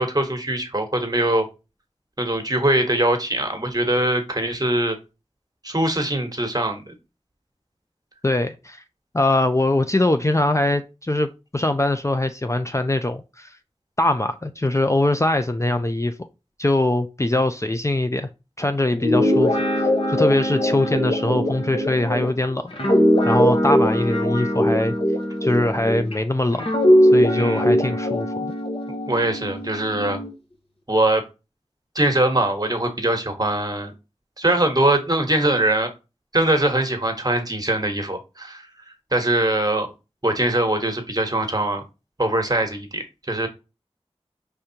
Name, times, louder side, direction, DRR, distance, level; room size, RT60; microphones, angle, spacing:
voice 1, 0.0-1.4 2.2-5.0 5.6-7.0 27.4-27.6 29.1-30.2 30.9-31.2 31.9-33.9 34.4-35.9 36.3-38.6 39.1-39.9 40.2-41.8 42.2-43.5, right 1 dB, 35° right, 1.2 m, -22 dB
voice 2, 8.2-8.8 9.1-13.5 14.0-16.1 16.6-18.3 18.6-22.7 23.2-24.9 25.4-26.6 27.1-28.5, left 1 dB, 25° left, 0.4 m, -22 dB
Guitar, 18.9-26.1 26.6-30.3, equal, 55° left, 1.2 m, -20 dB
5.0 x 3.4 x 2.8 m
wide cardioid pair, 40°, 11 cm